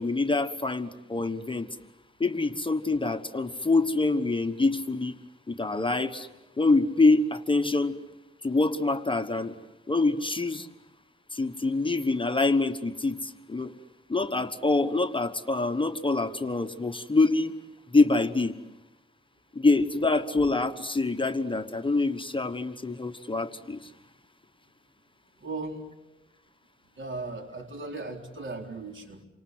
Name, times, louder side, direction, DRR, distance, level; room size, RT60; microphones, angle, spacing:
voice 1, 0.0-1.7 2.2-5.1 5.5-6.3 6.6-8.0 8.4-9.6 9.9-10.7 11.3-13.7 14.1-17.5 17.9-18.5 19.5-23.8, left 3 dB, 25° left, 8 dB, 1.2 m, -25 dB
voice 2, 25.4-25.8 27.0-29.3, right 3 dB, 65° right, 2 dB, 4.3 m, -37 dB
28.5 x 25.5 x 7.9 m, 1.0 s
wide cardioid pair, 105°, 21 cm